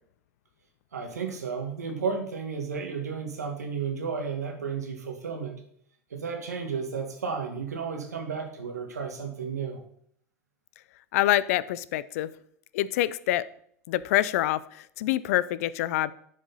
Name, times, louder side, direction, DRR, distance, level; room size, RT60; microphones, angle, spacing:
voice 1, 0.9-5.6 6.1-9.8, right 5 dB, 85° right, 1.7 m, -33 dB
voice 2, 11.1-12.3 12.7-13.4 13.9-14.6 15.0-16.1, left 14 dB, 65° left, 0.4 m, -25 dB
11.0 x 5.0 x 4.0 m
hypercardioid pair, 90°, 9 cm